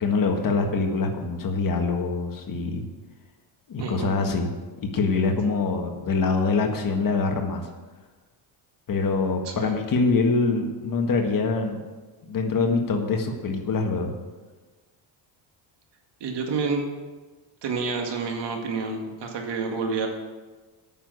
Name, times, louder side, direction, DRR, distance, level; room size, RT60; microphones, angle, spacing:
voice 1, 0.0-2.9 3.7-4.5 4.8-7.7 8.9-11.8 12.3-14.2, left 4 dB, 45° left, 4 dB, 1.7 m, -24 dB
voice 2, 3.8-4.1 9.5-9.8 16.2-16.8 17.6-20.1, right 4 dB, 60° right, 2 dB, 2.1 m, -29 dB
8.9 x 6.8 x 8.0 m, 1.3 s
cardioid pair, 110°, 47 cm